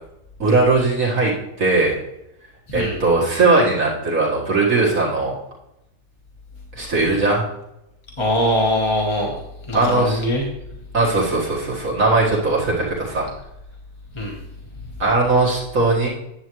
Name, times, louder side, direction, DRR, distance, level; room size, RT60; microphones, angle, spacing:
voice 1, 0.4-2.0 2.7-5.4 6.8-7.4 9.7-10.2 10.9-13.3 15.0-16.1, right 3 dB, 50° right, -4 dB, 2.0 m, -19 dB
voice 2, 8.2-9.3 9.7-10.4 14.2-14.4, left 1 dB, 20° left, -1 dB, 0.9 m, -21 dB
10.0 x 8.0 x 3.1 m, 0.86 s
omnidirectional pair, 1.8 m